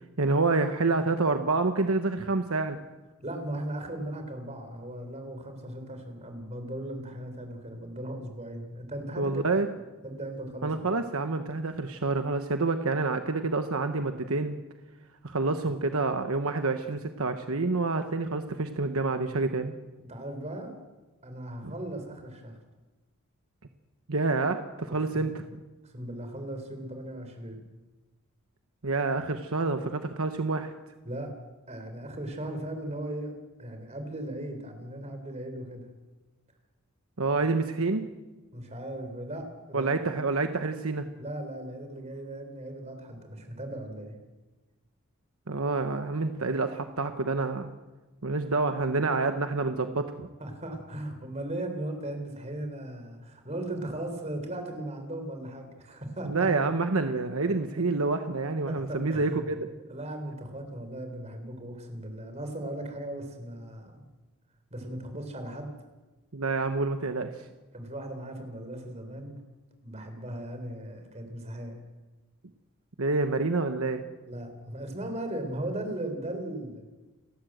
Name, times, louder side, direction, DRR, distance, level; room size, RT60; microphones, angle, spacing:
voice 1, 0.2-2.8 9.2-9.7 10.6-14.6 15.2-19.7 21.6-21.7 24.1-25.6 28.8-30.7 37.2-38.1 39.7-41.1 45.5-47.7 48.2-50.3 56.2-59.7 66.3-67.3 73.0-74.0, right 3 dB, 70° right, 7 dB, 1.1 m, -28 dB
voice 2, 3.2-9.6 10.0-10.7 20.0-20.7 21.2-22.6 24.9-25.3 25.9-27.6 31.0-31.3 31.7-33.3 33.6-35.9 38.5-40.0 41.2-44.2 50.4-56.5 57.4-57.5 58.7-59.5 59.9-64.0 64.7-65.8 67.7-69.4 69.8-71.8 74.2-76.8, right 1 dB, 30° right, 6 dB, 4.1 m, -37 dB
29.5 x 13.0 x 7.9 m, 1.2 s
head